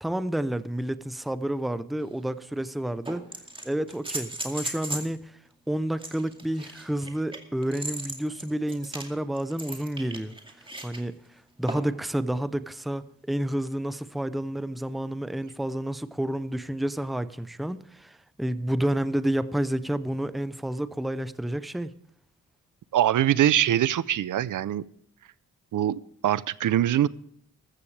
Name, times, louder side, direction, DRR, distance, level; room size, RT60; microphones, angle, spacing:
voice 1, 0.0-3.2 3.6-5.3 5.7-10.3 10.8-11.2 11.6-21.9, right 1 dB, ahead, 0.6 m, -30 dB
sound 1, 2.0-2.1 3.0-5.1 6.0-11.0 11.7-12.0 13.7-13.8, right 1 dB, 15° right, 2.2 m, -37 dB
voice 2, 22.9-24.8 25.7-27.1, right 11 dB, 70° right, 0.6 m, -23 dB
14.0 x 14.0 x 3.3 m
cardioid pair, 100°, 33 cm